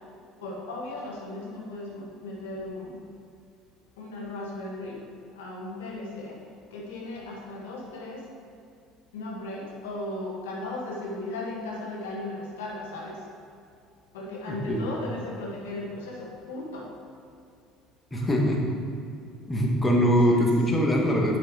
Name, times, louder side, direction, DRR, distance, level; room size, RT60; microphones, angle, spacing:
voice 1, 0.4-3.0 4.0-5.0 5.3-6.4 6.7-8.3 9.1-13.2 14.1-16.9 18.1-18.6 20.0-20.5, left 2 dB, 90° left, -2 dB, 1.6 m, -36 dB
voice 2, 14.5-14.8 18.1-18.6 19.5-21.4, equal, 15° left, -2 dB, 1.6 m, -22 dB
6.3 x 6.0 x 4.8 m, 2.4 s
supercardioid pair, 80°, 0 cm